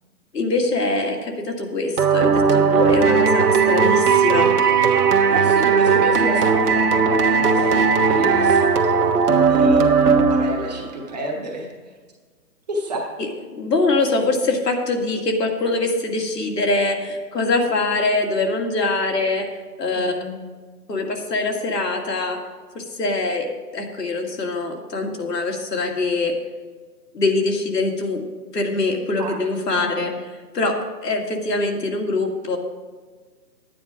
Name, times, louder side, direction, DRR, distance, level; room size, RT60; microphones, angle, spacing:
voice 1, 0.3-4.5 13.2-19.5 19.8-20.1 20.9-22.4 22.7-26.3 27.1-28.2 28.5-30.1 30.5-30.8 31.0-32.6, left 2 dB, 75° left, 1 dB, 2.3 m, -23 dB
sound 1, 2.0-10.9, right 5 dB, 65° right, 1.3 m, -17 dB
voice 2, 5.3-12.0 12.7-13.1 19.9-20.3 29.2-29.4 29.7-30.0, equal, 25° right, -1 dB, 1.4 m, -31 dB
11.0 x 9.3 x 5.0 m, 1.4 s
hypercardioid pair, 175°, 49 cm